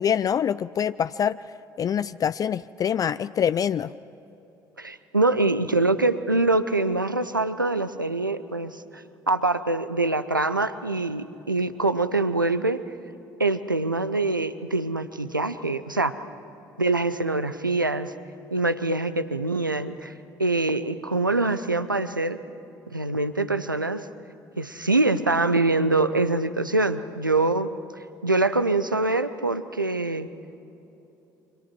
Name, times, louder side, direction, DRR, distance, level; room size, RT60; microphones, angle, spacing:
voice 1, 0.0-1.4 1.8-3.9, left 8 dB, 35° left, 16 dB, 0.4 m, -25 dB
voice 2, 4.8-12.8 13.4-16.1 16.8-18.1 18.5-20.1 20.4-22.4 22.9-24.1 24.6-27.7 28.2-30.3, right 2 dB, 90° right, 13 dB, 0.7 m, -24 dB
28.5 x 25.0 x 6.0 m, 2.9 s
figure-of-eight pair, 50°, 10 cm